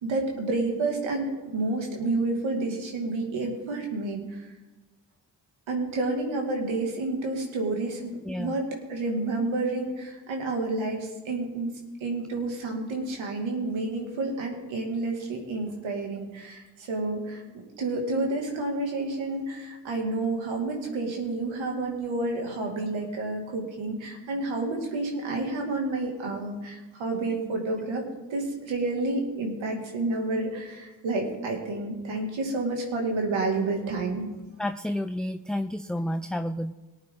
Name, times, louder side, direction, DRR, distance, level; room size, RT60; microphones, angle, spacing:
voice 1, 0.0-4.2 5.7-11.7 12.0-17.4 17.8-28.0 28.3-34.3, right 2 dB, 80° right, 1 dB, 2.3 m, -30 dB
voice 2, 8.2-8.6 34.6-36.7, left 1 dB, ahead, 9 dB, 0.5 m, -30 dB
18.5 x 8.9 x 3.7 m, 1.1 s
supercardioid pair, 40°, 46 cm